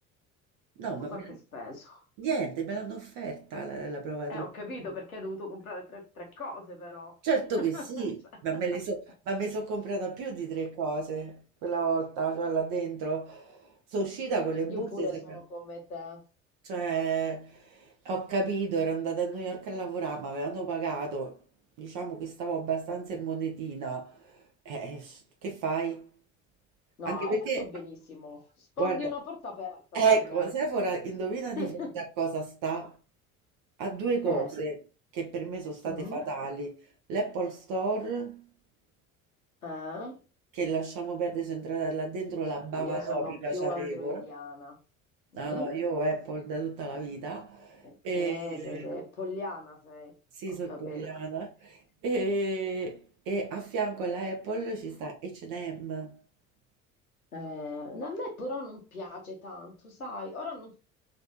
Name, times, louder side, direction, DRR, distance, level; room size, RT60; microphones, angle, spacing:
voice 1, 0.8-1.3 2.2-4.5 7.2-9.0 9.3-15.1 16.6-21.4 21.8-26.1 27.0-27.6 28.8-29.1 29.9-33.0 33.8-34.8 35.1-38.4 40.6-44.2 45.4-48.8 50.3-56.2, right 4 dB, 50° right, 0.9 m, -32 dB
voice 2, 1.5-2.0 4.3-7.1 7.7-8.4 14.7-16.2 27.0-30.0 30.3-30.5 31.6-32.0 34.2-34.5 35.8-36.2 39.6-40.2 42.8-44.8 45.3-45.8 47.8-50.2 50.6-51.1 57.3-60.8, left 2 dB, 85° left, 0.9 m, -39 dB
3.2 x 2.6 x 2.8 m
figure-of-eight pair, 60°, 42 cm